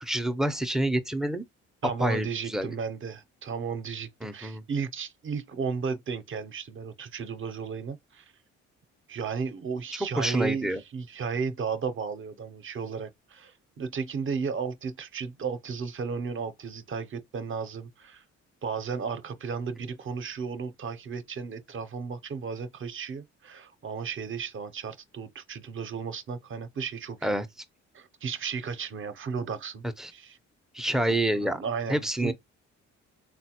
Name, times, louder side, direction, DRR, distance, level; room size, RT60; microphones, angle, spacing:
voice 1, 0.0-1.4 2.0-2.7 4.2-4.6 10.2-10.8 27.2-27.4 30.0-30.1 30.7-31.6 31.9-32.3, right 1 dB, ahead, 0.4 m, -27 dB
voice 2, 1.8-8.3 9.1-18.2 18.6-27.4 27.9-29.8 30.1-30.4 31.1-32.3, right 5 dB, 45° right, 0.6 m, -34 dB
3.8 x 2.1 x 2.8 m
cardioid pair, 80°, 30 cm